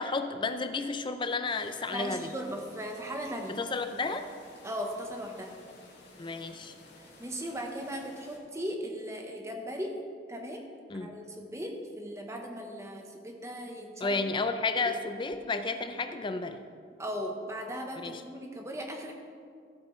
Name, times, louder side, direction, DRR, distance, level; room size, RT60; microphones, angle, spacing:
voice 1, 0.0-2.3 3.5-4.3 6.2-6.7 10.9-11.1 14.0-16.6 18.0-18.2, left 3 dB, 25° left, 8 dB, 0.5 m, -32 dB
sound 1, 1.5-8.4, left 2 dB, 60° left, 2.1 m, -54 dB
voice 2, 1.9-3.6 4.6-5.6 7.0-10.0 10.3-10.7 11.0-14.2 17.0-19.1, equal, 15° right, 2 dB, 0.9 m, -38 dB
14.5 x 8.2 x 3.2 m, 2.2 s
head